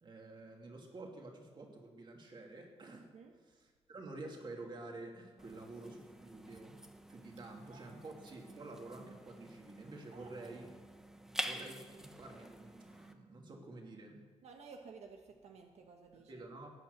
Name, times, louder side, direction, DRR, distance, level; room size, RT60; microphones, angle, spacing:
voice 1, 0.0-3.1 3.6-6.7 7.1-10.7 11.4-14.2 16.1-16.7, right 2 dB, 45° right, 1 dB, 2.5 m, -50 dB
sound 1, 5.4-13.1, right 1 dB, 5° right, 0.8 m, -48 dB
voice 2, 10.1-10.6 14.4-16.5, right 5 dB, 80° right, 3 dB, 1.1 m, -55 dB
17.0 x 8.9 x 6.6 m, 1.5 s
wide cardioid pair, 135°, 11 cm